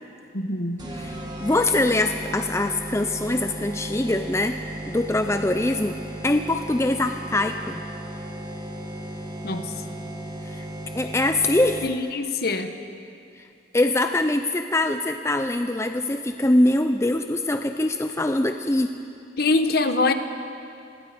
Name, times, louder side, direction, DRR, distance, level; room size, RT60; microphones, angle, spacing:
voice 1, 0.3-0.9 9.4-9.7 11.8-12.7 19.4-20.1, left 3 dB, 55° left, 8 dB, 1.2 m, -24 dB
sound 1, 0.8-12.2, right 1 dB, 25° right, 2.0 m, -35 dB
voice 2, 0.9-4.6 4.9-6.0 6.2-7.8 10.5-10.7 10.9-11.9 13.4-13.5 13.7-18.9, left 1 dB, 15° left, 7 dB, 0.5 m, -23 dB
26.0 x 19.5 x 5.2 m, 2.5 s
head